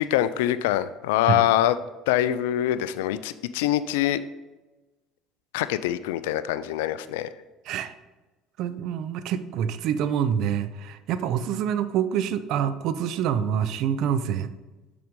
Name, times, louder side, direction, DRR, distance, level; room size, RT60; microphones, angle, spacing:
voice 1, 0.0-1.8 2.1-4.2 5.5-7.3, left 12 dB, 80° left, 13 dB, 0.3 m, -24 dB
voice 2, 8.6-14.6, right 8 dB, 65° right, 12 dB, 0.5 m, -26 dB
6.8 x 5.1 x 3.6 m, 1.1 s
hypercardioid pair, 75°, 0 cm